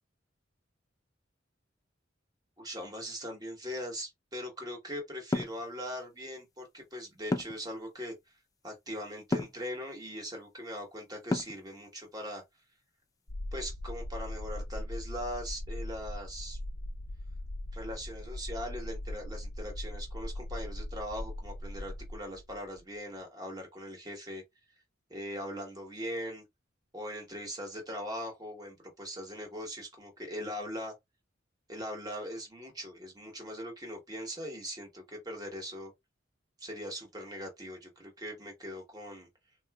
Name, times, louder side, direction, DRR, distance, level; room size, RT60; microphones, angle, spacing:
voice 1, 2.6-8.1 8.6-12.4 13.5-16.6 17.7-24.4 25.1-26.4 26.9-30.9 31.7-35.9 36.6-39.3, equal, 20° right, 1.2 m, -40 dB
sound 1, 5.3-5.6 7.3-7.7 9.3-9.6 11.3-11.7, left 2 dB, 20° left, 0.3 m, -30 dB
sound 2, 13.3-22.8, left 1 dB, 55° left, 0.7 m, -40 dB
3.7 x 2.6 x 2.3 m
head